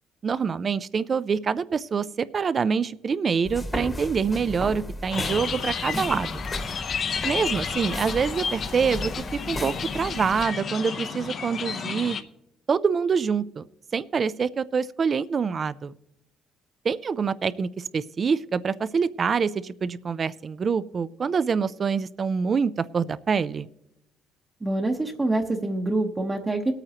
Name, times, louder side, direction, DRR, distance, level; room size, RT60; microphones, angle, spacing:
voice 1, 0.2-6.4 7.2-9.1 9.5-12.2 12.7-13.6 13.9-15.9 16.8-23.7, right 6 dB, 40° right, 17 dB, 0.4 m, -26 dB
sound 1, 3.4-10.4, left 1 dB, 20° left, 1.2 m, -35 dB
sound 2, 5.1-12.2, left 6 dB, 50° left, 0.7 m, -31 dB
voice 2, 24.6-26.7, right 2 dB, 20° right, 0 dB, 0.9 m, -25 dB
21.5 x 8.9 x 2.9 m, 0.84 s
cardioid pair, 110°, 0 cm